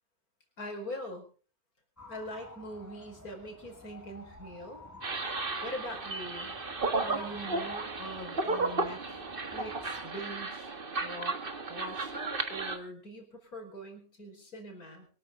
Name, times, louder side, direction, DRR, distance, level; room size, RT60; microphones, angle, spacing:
voice 1, 0.6-1.2 2.1-4.9 5.6-6.5 7.0-9.2 9.5-10.7 11.0-11.4 11.7-15.1, equal, 65° left, 4 dB, 5.2 m, -42 dB
sound 1, 2.0-10.1, left 1 dB, 10° left, 1.7 m, -50 dB
sound 2, 5.0-12.8, right 3 dB, 35° right, 1.7 m, -34 dB
24.0 x 13.0 x 3.8 m, 0.37 s
omnidirectional pair, 1.7 m